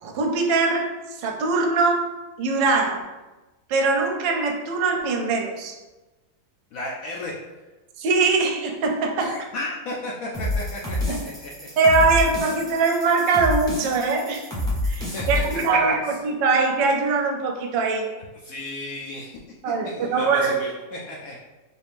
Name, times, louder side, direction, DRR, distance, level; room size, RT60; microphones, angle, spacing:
voice 1, 0.0-0.9 1.2-2.1 2.4-3.1 3.7-5.8 8.0-9.4 11.1-11.2 11.8-14.5 14.8-18.1 19.6-20.5, right 4 dB, 80° right, 2 dB, 1.2 m, -22 dB
voice 2, 6.7-7.4 9.2-11.7 15.1-15.4 15.7-15.9 18.4-19.4 19.6-21.4, left 2 dB, 75° left, -3 dB, 0.8 m, -34 dB
sound 1, 10.3-15.7, left 1 dB, 5° left, 0.3 m, -28 dB
4.1 x 2.5 x 3.5 m, 1.1 s
omnidirectional pair, 2.0 m